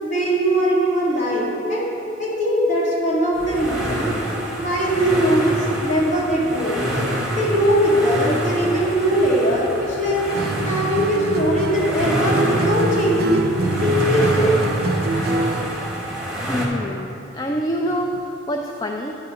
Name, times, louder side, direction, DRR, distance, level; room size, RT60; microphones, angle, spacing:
voice 1, 0.0-1.9 2.2-4.1 4.6-6.8 7.3-10.2 10.6-13.4 13.8-14.6, equal, 40° left, -7 dB, 2.1 m, -20 dB
sound 1, 3.3-16.7, equal, 5° right, 1.2 m, -27 dB
Acoustic guitar, 10.3-15.7, right 2 dB, 50° right, 0.4 m, -25 dB
voice 2, 16.5-19.2, equal, 20° left, 2 dB, 0.3 m, -26 dB
10.0 x 3.8 x 6.9 m, 2.9 s
head